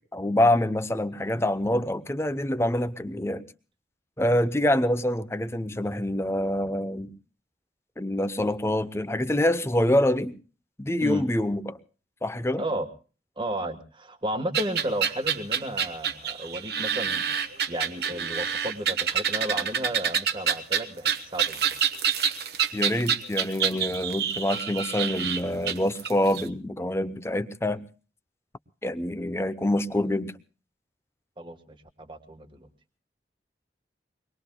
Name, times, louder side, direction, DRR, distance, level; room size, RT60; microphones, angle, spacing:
voice 1, 0.1-3.5 4.2-7.1 8.0-10.3 10.8-11.8 12.2-12.6 22.7-27.8 28.8-30.3, left 1 dB, 15° left, 13 dB, 0.7 m, -26 dB
voice 2, 13.4-17.3 17.7-21.7 31.4-32.7, right 1 dB, 30° right, 5 dB, 1.4 m, -33 dB
sound 1, 14.5-26.4, right 8 dB, 60° right, 1.1 m, -27 dB
25.0 x 21.0 x 2.3 m, 0.36 s
head